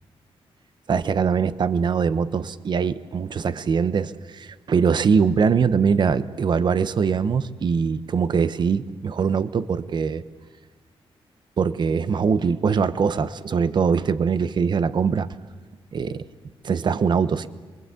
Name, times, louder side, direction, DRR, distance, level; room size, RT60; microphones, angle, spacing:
voice 1, 0.9-10.2 11.6-15.3 15.9-16.3 16.6-17.5, right 6 dB, 50° right, 13 dB, 1.0 m, -22 dB
28.0 x 22.5 x 8.4 m, 1.4 s
wide cardioid pair, 150°, 10 cm